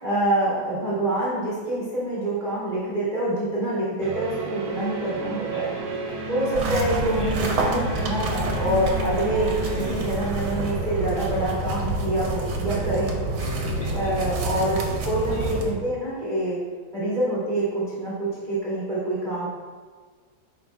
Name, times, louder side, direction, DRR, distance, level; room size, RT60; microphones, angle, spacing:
voice 1, 0.0-5.7 6.3-13.1 13.9-16.6 16.9-19.5, right 1 dB, 30° right, -10 dB, 0.7 m, -26 dB
sound 1, 4.0-15.4, right 3 dB, 65° right, 1.1 m, -34 dB
voice 2, 5.5-6.3 7.2-7.3 9.8-9.9 13.4-14.1 15.4-15.5, left 3 dB, 65° left, -4 dB, 1.1 m, -38 dB
sound 2, 6.5-15.7, right 2 dB, 80° right, 1.4 m, -28 dB
4.9 x 4.1 x 2.5 m, 1.5 s
omnidirectional pair, 2.1 m